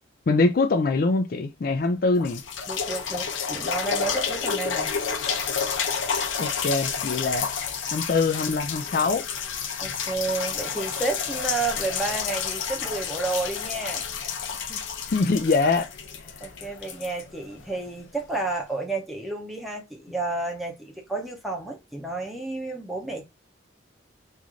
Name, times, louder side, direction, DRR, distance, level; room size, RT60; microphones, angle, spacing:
voice 1, 0.3-2.4 6.4-7.5 7.9-9.2 15.0-15.9, left 3 dB, 50° left, 0.4 m, -23 dB
sound 1, 2.2-17.9 18.5-18.6, left 6 dB, 85° left, 0.7 m, -30 dB
voice 2, 2.7-4.9 9.8-14.0 14.5-14.8 16.4-23.3, right 3 dB, ahead, 0.8 m, -31 dB
3.1 x 2.6 x 3.6 m
head